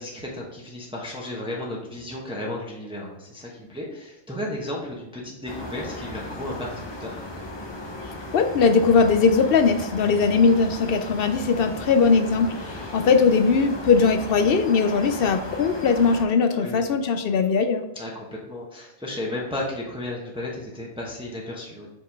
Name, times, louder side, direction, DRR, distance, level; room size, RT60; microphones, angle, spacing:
voice 1, 0.0-7.2 16.5-16.8 17.9-21.9, left 1 dB, 5° right, -3 dB, 1.0 m, -34 dB
sound 1, 5.5-16.3, left 1 dB, 25° left, 0.7 m, -36 dB
voice 2, 8.3-12.5 12.9-17.8, left 5 dB, 60° left, 8 dB, 0.7 m, -20 dB
5.7 x 5.1 x 3.5 m, 0.95 s
omnidirectional pair, 1.2 m